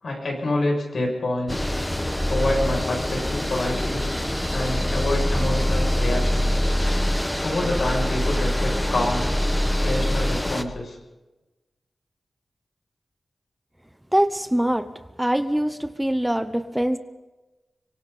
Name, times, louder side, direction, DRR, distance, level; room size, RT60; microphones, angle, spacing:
voice 1, 0.0-1.7 2.3-4.1 4.5-6.6 7.4-9.4 9.8-11.0, left 2 dB, 70° left, 1 dB, 7.3 m, -27 dB
sound 1, 1.5-10.6, equal, 10° left, 1.2 m, -24 dB
voice 2, 14.1-14.9 15.2-17.0, right 1 dB, 10° right, 10 dB, 0.9 m, -23 dB
25.5 x 23.5 x 4.3 m, 1.1 s
wide cardioid pair, 85°, 0 cm